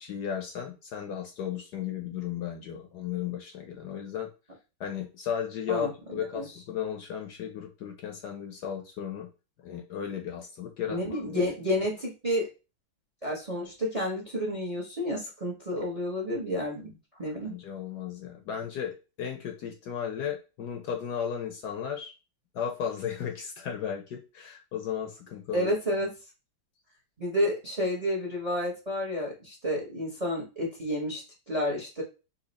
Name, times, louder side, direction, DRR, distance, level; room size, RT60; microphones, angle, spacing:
voice 1, 0.0-4.3 4.8-9.3 9.6-11.5 17.4-22.1 22.5-25.7, left 8 dB, 65° left, 4 dB, 1.1 m, -35 dB
voice 2, 10.9-12.5 13.2-17.5 25.5-26.1 27.2-32.0, left 1 dB, 30° right, -1 dB, 0.8 m, -30 dB
4.2 x 2.8 x 4.0 m, 0.30 s
omnidirectional pair, 2.2 m